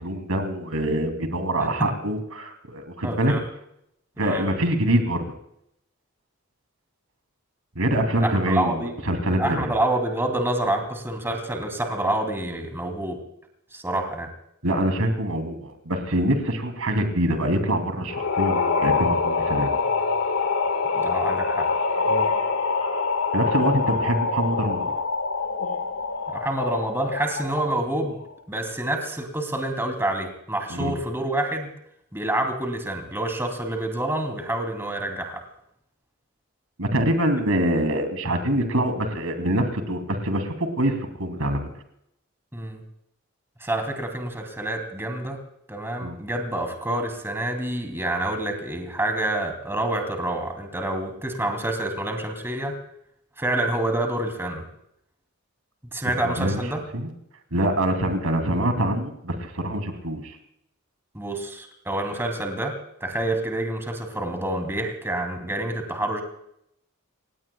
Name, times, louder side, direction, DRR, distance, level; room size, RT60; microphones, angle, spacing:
voice 1, 0.0-3.3 4.2-5.3 7.8-9.7 14.6-19.8 23.3-24.9 30.7-30.9 36.8-41.6 46.0-46.2 56.2-56.6 56.9-57.1 57.5-60.4, right 1 dB, 80° right, 7 dB, 2.9 m, -25 dB
voice 2, 3.0-3.4 4.2-4.5 8.2-8.9 9.4-13.2 13.7-14.3 20.9-21.7 26.3-28.2 28.5-31.7 32.1-35.4 42.5-42.8 43.6-45.4 45.7-52.8 53.4-54.6 55.9-56.8 61.1-66.2, right 1 dB, 10° right, 5 dB, 2.9 m, -27 dB
sound 1, 18.1-27.8, left 4 dB, 75° left, 1.8 m, -25 dB
29.5 x 17.0 x 2.3 m, 0.75 s
head